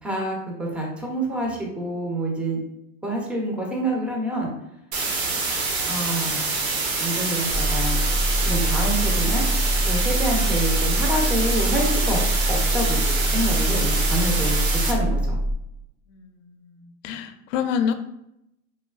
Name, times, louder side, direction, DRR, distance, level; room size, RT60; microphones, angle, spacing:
voice 1, 0.0-2.6 3.0-4.5 5.9-6.4 7.0-8.0 8.4-9.4 9.9-12.2 12.5-15.4, right 1 dB, 5° right, -1 dB, 0.5 m, -27 dB
sound 1, 4.9-14.9, right 3 dB, 70° right, 0.9 m, -26 dB
sound 2, 7.5-15.5, right 1 dB, 50° right, 0.5 m, -24 dB
voice 2, 16.1-17.9, left 7 dB, 65° left, 9 dB, 0.5 m, -28 dB
3.3 x 2.3 x 2.3 m, 0.80 s
hypercardioid pair, 115°, 42 cm